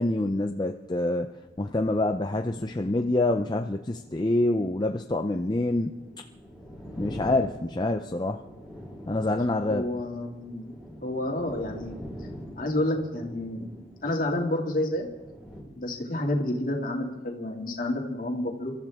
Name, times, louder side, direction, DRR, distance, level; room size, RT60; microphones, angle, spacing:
voice 1, 0.0-1.3 1.6-5.9 7.0-8.4 9.1-9.8, left 2 dB, 25° left, 5 dB, 0.5 m, -26 dB
sound 1, 1.4-15.6, equal, 5° right, 4.7 m, -45 dB
voice 2, 9.7-10.8 11.0-12.0 12.6-13.7 14.0-15.1 15.8-18.7, left 1 dB, 45° left, 1 dB, 2.5 m, -29 dB
29.0 x 13.5 x 3.6 m, 1.1 s
head